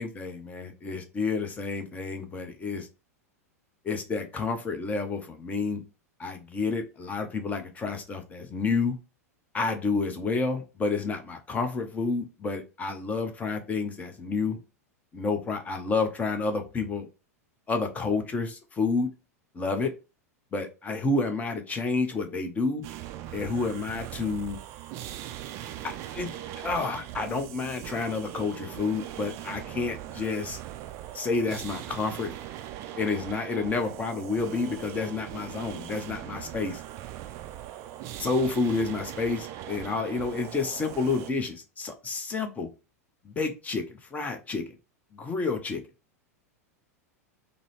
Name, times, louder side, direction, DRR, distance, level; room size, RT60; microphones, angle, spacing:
voice 1, 0.0-2.9 3.8-5.8 6.2-8.9 9.5-14.6 15.1-17.1 17.7-19.1 19.5-19.9 20.5-22.8 23.3-24.6 25.8-30.6 31.1-32.3 33.0-36.8 38.2-42.7 43.2-44.6 45.1-45.8, left 4 dB, 15° left, 6 dB, 0.7 m, -30 dB
sound 1, 22.8-41.3, right 12 dB, 35° right, 0.4 m, -40 dB
3.7 x 2.0 x 3.1 m, 0.29 s
figure-of-eight pair, 90°, 8 cm